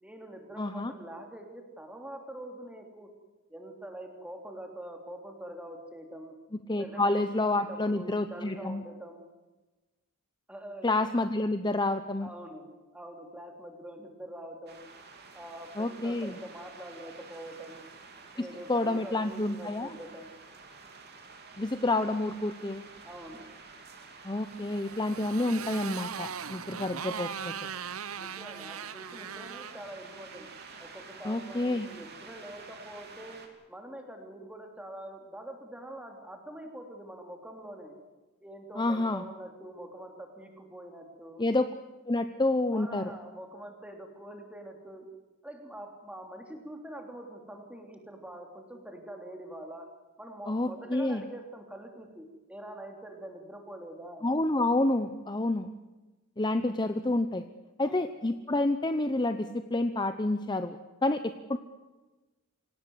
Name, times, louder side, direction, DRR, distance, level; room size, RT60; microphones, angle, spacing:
voice 1, 0.0-3.1 3.5-6.3 6.8-7.1 7.6-9.3 10.5-10.9 12.2-14.9 15.3-17.9 18.3-20.3 23.0-23.5 28.2-30.5 30.8-33.4 33.7-37.9 38.4-41.4 42.7-45.1 45.4-49.9 50.2-54.3 57.8-58.1, right 1 dB, 5° right, 3 dB, 3.4 m, -45 dB
voice 2, 0.6-0.9 6.7-8.8 10.8-12.3 15.8-16.4 18.4-19.9 21.6-22.8 24.2-27.5 31.2-31.9 38.8-39.2 41.4-41.7 42.1-43.1 50.5-51.2 54.2-55.7 56.4-57.4 57.8-61.6, left 2 dB, 20° left, 9 dB, 0.8 m, -29 dB
sound 1, 14.7-33.5, right 4 dB, 50° right, 3.6 m, -50 dB
Motorcycle, 24.4-30.8, right 7 dB, 70° right, 0.8 m, -40 dB
26.5 x 18.0 x 8.0 m, 1.2 s
head